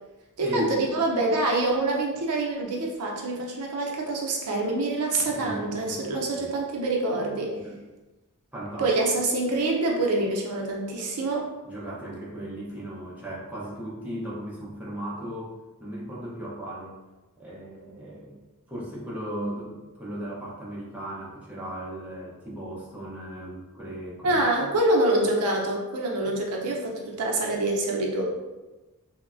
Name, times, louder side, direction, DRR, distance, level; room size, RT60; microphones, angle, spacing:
voice 1, 0.4-7.6 8.8-11.5 24.2-28.2, right 2 dB, 80° right, 0 dB, 0.5 m, -26 dB
voice 2, 5.3-6.1 6.3-6.5 7.6-7.8 8.5-8.9 11.6-15.5 15.8-16.9 17.4-18.4 18.7-24.4, right 1 dB, 5° right, -6 dB, 0.5 m, -36 dB
3.1 x 2.1 x 2.4 m, 1.1 s
head